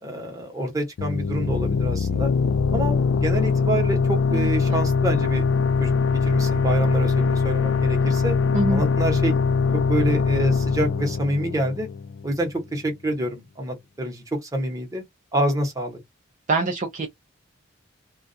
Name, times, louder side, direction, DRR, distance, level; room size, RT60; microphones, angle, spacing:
voice 1, 0.0-2.3 2.7-5.4 5.8-5.9 6.2-8.4 8.7-9.4 9.9-11.9 12.2-15.0 15.3-16.0, right 1 dB, 15° right, 0.9 m, -27 dB
sound 1, 1.0-12.4, left 5 dB, 65° left, 0.3 m, -22 dB
voice 2, 4.3-4.8 8.5-8.8 16.5-17.1, right 2 dB, 40° right, 0.5 m, -25 dB
2.3 x 2.3 x 2.6 m
head